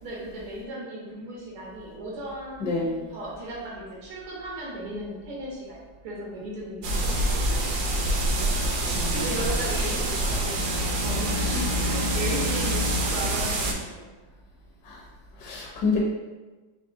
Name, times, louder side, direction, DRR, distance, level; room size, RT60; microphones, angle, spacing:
voice 1, 0.0-5.8 6.0-7.6 9.1-14.1, right 1 dB, 85° right, -4 dB, 1.9 m, -36 dB
voice 2, 2.6-2.9 8.9-9.3 11.4-11.6 14.8-15.0 15.4-16.0, left 4 dB, 65° left, -3 dB, 1.1 m, -28 dB
sound 1, 6.8-13.7, right 1 dB, 70° right, 1.0 m, -26 dB
4.6 x 3.0 x 2.7 m, 1.2 s
omnidirectional pair, 2.2 m